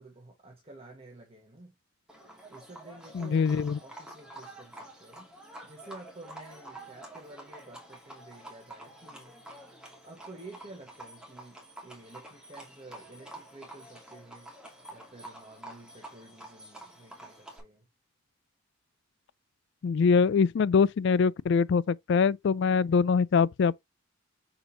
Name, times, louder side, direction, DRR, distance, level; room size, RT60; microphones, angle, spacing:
voice 1, 0.0-1.7 2.5-9.3 10.0-11.6 11.8-14.5 14.9-17.8, right 2 dB, 30° right, 1.5 m, -50 dB
Livestock farm animals working animals, 2.1-17.6, right 1 dB, 5° right, 2.4 m, -48 dB
voice 2, 3.1-3.8 19.8-23.8, left 5 dB, 55° left, 0.3 m, -23 dB
6.9 x 5.2 x 2.8 m
head